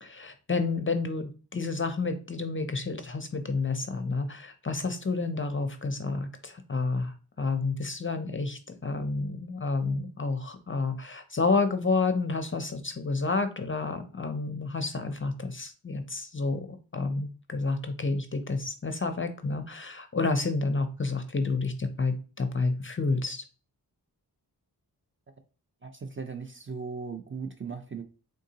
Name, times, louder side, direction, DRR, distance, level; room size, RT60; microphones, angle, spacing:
voice 1, 0.0-16.7 16.9-23.4, left 3 dB, 30° left, 0.5 m, -30 dB
voice 2, 25.8-28.0, right 5 dB, 30° right, 0.5 m, -37 dB
3.7 x 3.7 x 2.7 m
wide cardioid pair, 75°, 40 cm